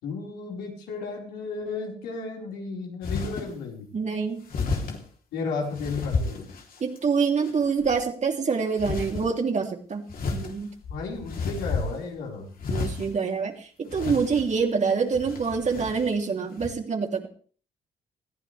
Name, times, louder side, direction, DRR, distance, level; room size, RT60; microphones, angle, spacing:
voice 1, 0.0-3.9 5.3-6.5 10.9-12.5, left 4 dB, 85° left, -1 dB, 4.9 m, -33 dB
sound 1, 3.0-3.5 4.5-5.0 5.7-7.0 7.4-8.0 8.8-9.3 10.1-12.2 12.6-13.2 13.9-14.6 15.1-16.1 16.6-16.7, left 4 dB, 60° left, 3.4 m, -31 dB
voice 2, 3.9-4.4 6.8-10.7 12.7-17.3, right 5 dB, 45° right, 3 dB, 3.2 m, -26 dB
20.5 x 14.5 x 3.4 m, 0.43 s
supercardioid pair, 65°, 17 cm